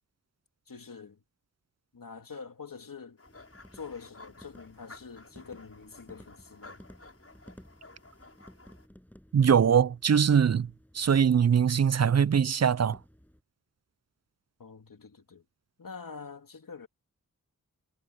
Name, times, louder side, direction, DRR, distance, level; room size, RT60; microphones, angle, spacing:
voice 1, 0.7-1.2 1.9-3.2 3.7-6.8 14.6-15.4 15.8-16.9, left 5 dB, 75° left, 2.5 m, -45 dB
sound 1, 3.2-8.9, left 2 dB, 45° left, 7.0 m, -53 dB
sound 2, 3.3-13.4, equal, 5° left, 7.5 m, -56 dB
voice 2, 9.3-10.7 10.9-13.0, right 7 dB, 50° right, 0.4 m, -22 dB
wide cardioid pair, 80°, 34 cm